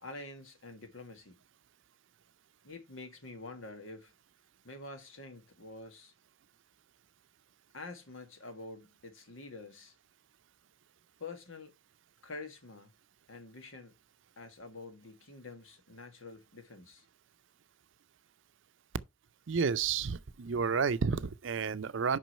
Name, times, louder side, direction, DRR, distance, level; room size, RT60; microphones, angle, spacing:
voice 1, 0.0-1.4 2.6-4.1 4.6-6.1 7.7-10.0 11.2-11.7 12.2-12.9 13.3-13.9 14.4-17.1, left 3 dB, 75° left, 1.8 m, -47 dB
voice 2, 19.5-22.2, right 5 dB, 65° right, 0.5 m, -31 dB
6.2 x 5.5 x 5.5 m
head